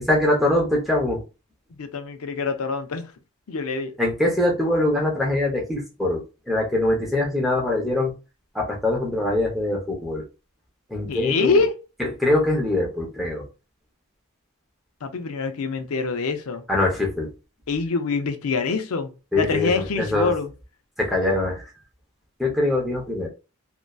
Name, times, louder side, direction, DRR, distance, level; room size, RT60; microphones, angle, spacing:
voice 1, 0.1-1.2 4.0-8.1 8.5-10.2 10.9-11.6 12.0-13.5 16.7-17.3 19.3-20.3 21.0-21.6 22.4-23.3, left 1 dB, ahead, 0.6 m, -23 dB
voice 2, 1.8-3.0 3.5-3.9 11.1-11.7 15.0-16.6 17.7-20.5, left 4 dB, 70° left, 0.5 m, -25 dB
2.6 x 2.1 x 2.2 m
head